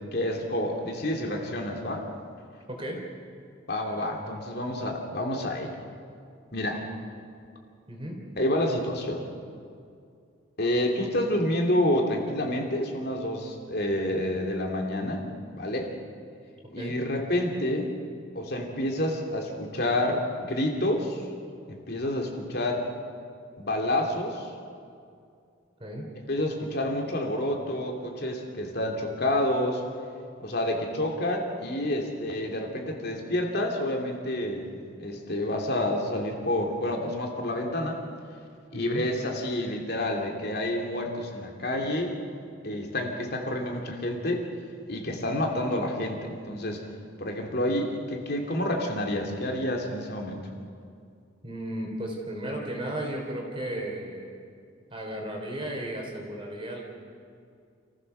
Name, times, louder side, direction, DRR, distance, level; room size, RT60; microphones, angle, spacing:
voice 1, 0.1-2.1 3.7-5.8 6.5-6.8 8.4-9.3 10.6-15.2 15.5-15.9 16.7-17.9 18.3-21.2 21.7-22.8 23.6-24.5 26.3-29.8 30.4-34.7 35.0-38.0 38.7-42.2 42.6-44.5 44.9-46.8 47.2-50.4, left 1 dB, 55° left, 1 dB, 2.9 m, -28 dB
voice 2, 2.7-3.0 7.9-8.2 16.8-17.0 25.8-26.1 38.7-39.1 45.2-45.3 51.4-54.4 54.9-56.8, right 1 dB, 25° right, 0 dB, 3.3 m, -34 dB
28.5 x 15.5 x 6.8 m, 2.3 s
head